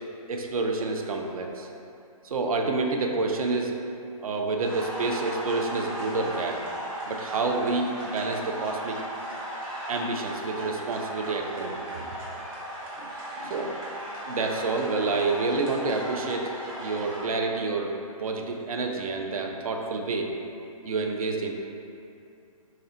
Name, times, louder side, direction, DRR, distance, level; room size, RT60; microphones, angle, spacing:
voice 1, 0.3-1.7 2.2-3.8 4.2-6.6 7.1-9.0 9.9-12.1 13.0-13.8 14.3-16.5 16.8-17.9 18.2-20.3 20.8-21.5, right 3 dB, 75° right, 2 dB, 0.5 m, -28 dB
sound 1, 4.6-17.2, right 1 dB, 35° right, 1.2 m, -36 dB
4.2 x 2.1 x 3.7 m, 2.6 s
hypercardioid pair, 170°, 19 cm